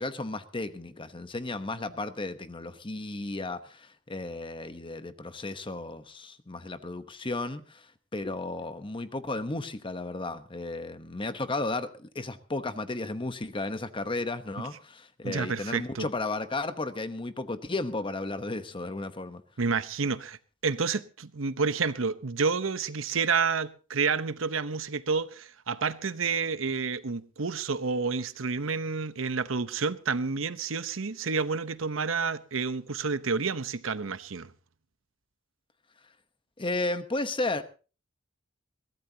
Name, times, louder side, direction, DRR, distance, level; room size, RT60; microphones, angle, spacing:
voice 1, 0.0-7.9 8.1-19.4 36.6-37.6, left 2 dB, 25° left, 1.0 m, -34 dB
voice 2, 15.2-16.1 19.6-34.5, right 5 dB, 80° right, 0.9 m, -29 dB
22.0 x 16.5 x 2.8 m
head